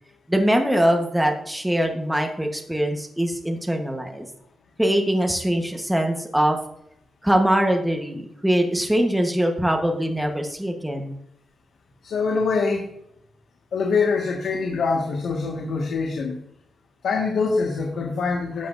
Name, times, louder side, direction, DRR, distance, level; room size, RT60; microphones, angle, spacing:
voice 1, 0.3-4.2 4.8-6.6 7.2-11.2, equal, 5° right, 3 dB, 1.2 m, -22 dB
voice 2, 12.0-12.9 13.7-16.3 17.0-18.7, left 4 dB, 75° left, 0 dB, 1.7 m, -24 dB
12.5 x 8.5 x 2.6 m, 0.75 s
wide cardioid pair, 140°, 0 cm